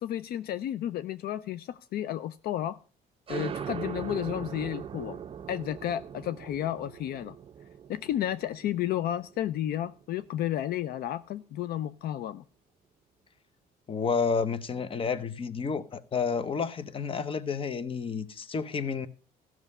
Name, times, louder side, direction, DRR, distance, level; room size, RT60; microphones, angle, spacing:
voice 1, 0.0-2.8 3.3-5.2 5.5-7.4 7.9-12.4, left 12 dB, 65° left, 0.5 m, -32 dB
sound 1, 3.3-10.5, right 8 dB, 35° right, 0.5 m, -40 dB
voice 2, 13.9-19.1, left 5 dB, 30° left, 0.8 m, -30 dB
14.5 x 6.2 x 5.4 m
cardioid pair, 110°, 17 cm